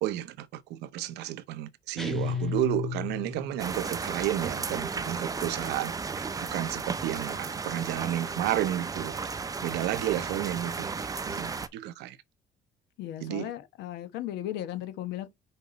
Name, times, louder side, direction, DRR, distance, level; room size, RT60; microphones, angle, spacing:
voice 1, 0.0-9.2 9.6-12.2 13.2-13.5, right 13 dB, 85° right, 0.7 m, -32 dB
sound 1, 2.0-3.7, left 6 dB, ahead, 1.1 m, -33 dB
sound 2, 3.6-11.7, right 4 dB, 20° right, 0.6 m, -34 dB
voice 2, 13.0-15.3, left 13 dB, 85° left, 1.1 m, -36 dB
5.6 x 4.3 x 4.1 m
cardioid pair, 110°, 17 cm